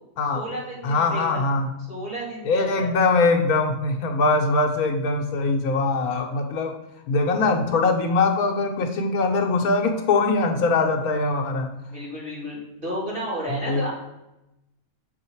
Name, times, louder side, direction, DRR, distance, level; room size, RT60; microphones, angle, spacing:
voice 1, 0.3-1.4 1.9-2.9 11.9-13.9, equal, 35° right, -8 dB, 3.0 m, -32 dB
voice 2, 0.8-1.7 2.4-6.7 7.1-11.7 13.5-13.8, left 3 dB, 85° left, 4 dB, 1.4 m, -22 dB
6.4 x 4.7 x 4.5 m, 0.93 s
omnidirectional pair, 1.5 m